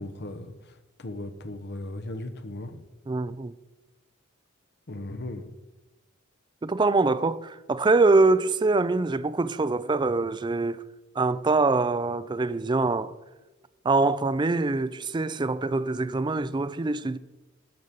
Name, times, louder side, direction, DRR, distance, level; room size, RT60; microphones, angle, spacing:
voice 1, 0.0-2.9 4.9-5.5, left 1 dB, 55° left, 1.0 m, -37 dB
voice 2, 3.1-3.5 6.6-10.8 11.2-13.1 13.8-17.2, right 3 dB, 20° right, 0.4 m, -24 dB
12.0 x 5.4 x 8.1 m
head